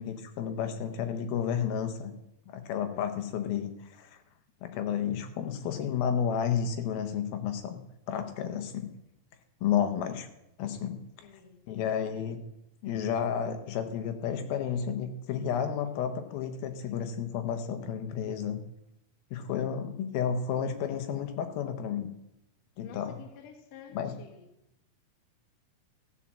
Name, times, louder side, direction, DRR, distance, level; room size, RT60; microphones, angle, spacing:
voice 1, 0.0-2.1 2.5-4.2 4.6-8.9 9.6-10.3 10.6-11.3 11.7-12.4 12.8-18.6 19.3-22.1 22.8-23.2 23.9-24.1, left 8 dB, 80° left, 7 dB, 2.6 m, -31 dB
voice 2, 11.2-11.6 22.8-24.5, left 8 dB, 55° left, 4 dB, 2.1 m, -50 dB
14.5 x 5.7 x 7.3 m, 0.85 s
omnidirectional pair, 4.4 m